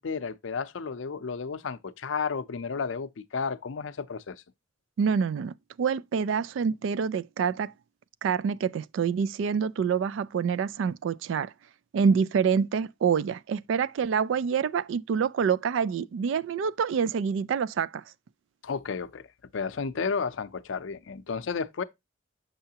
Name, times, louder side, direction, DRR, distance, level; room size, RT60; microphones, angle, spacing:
voice 1, 0.0-4.4 18.6-19.2 19.5-21.8, left 5 dB, 80° left, 0.5 m, -32 dB
voice 2, 5.0-7.7 8.2-11.5 11.9-18.0, right 6 dB, 75° right, 0.3 m, -26 dB
6.8 x 5.6 x 2.8 m
head